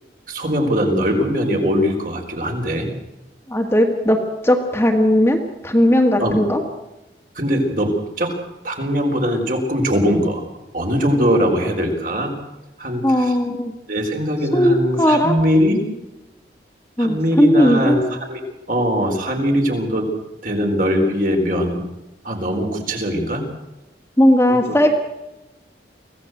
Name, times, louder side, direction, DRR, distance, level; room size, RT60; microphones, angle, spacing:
voice 1, 0.3-2.9 6.2-6.4 7.3-8.3 8.6-10.4 10.7-12.3 12.8-13.4 13.9-15.8 17.0-18.4 18.7-20.1 20.4-21.8 22.2-23.4 24.5-24.8, equal, 50° right, 3 dB, 4.1 m, -21 dB
voice 2, 3.5-6.6 13.0-13.7 14.5-15.3 17.0-18.0 24.2-24.9, equal, 15° left, 3 dB, 1.9 m, -17 dB
24.5 x 16.5 x 7.9 m, 0.98 s
head